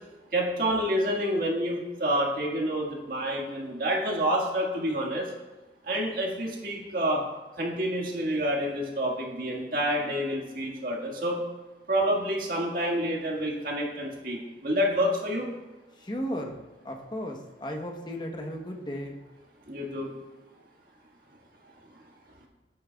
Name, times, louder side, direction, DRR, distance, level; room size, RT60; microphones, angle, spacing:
voice 1, 0.3-5.3 5.8-7.2 7.6-11.4 11.9-15.5 19.7-20.1, equal, 50° right, -1 dB, 1.7 m, -28 dB
voice 2, 16.0-19.2, equal, 25° left, 2 dB, 1.0 m, -35 dB
11.5 x 8.6 x 2.3 m, 1.1 s
head